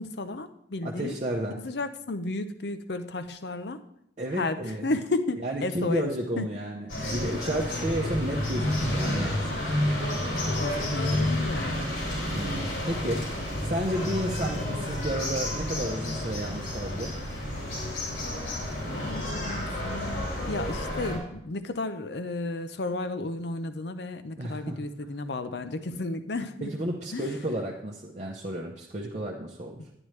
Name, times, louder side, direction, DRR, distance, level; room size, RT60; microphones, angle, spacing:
voice 1, 0.0-1.2 1.6-3.8 4.3-6.1 6.4-6.5 7.0-7.2 10.5-12.0 18.4-18.7 19.0-26.7 27.1-27.3 29.8-29.9, left 2 dB, 65° left, 10 dB, 0.6 m, -33 dB
voice 2, 0.8-1.6 4.2-4.9 5.4-9.5 12.3-17.1 24.4-24.8 26.6-29.8, right 1 dB, 40° right, -2 dB, 0.8 m, -32 dB
sound 1, 6.9-21.2, left 1 dB, 85° left, 3.7 m, -30 dB
10.5 x 9.8 x 3.2 m, 0.75 s
head